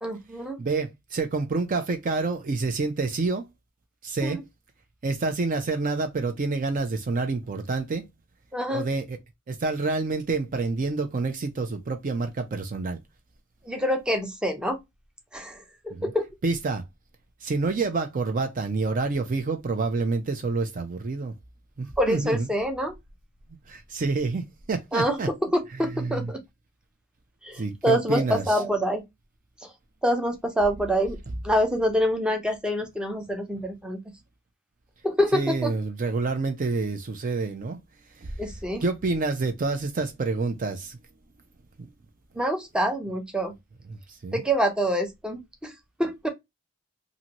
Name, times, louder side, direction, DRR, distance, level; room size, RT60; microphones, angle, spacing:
voice 1, 0.0-0.6 4.2-4.4 8.5-8.9 13.6-14.8 15.3-16.3 22.0-22.9 24.9-26.4 27.4-29.0 29.6-29.7 30.0-31.2 31.4-34.0 35.0-35.7 38.4-38.8 42.4-43.5 44.3-45.7 46.0-46.3, equal, 5° right, 0.6 m, -26 dB
voice 2, 0.6-3.5 4.0-4.4 5.0-8.0 8.7-9.2 9.5-13.0 15.9-16.1 16.4-16.8 17.4-21.3 21.8-22.5 23.7-25.3 25.9-26.3 27.6-28.6 35.3-37.8 38.2-38.3 38.8-41.0 43.9-44.4, right 3 dB, 40° right, 0.4 m, -28 dB
2.7 x 2.6 x 2.8 m
head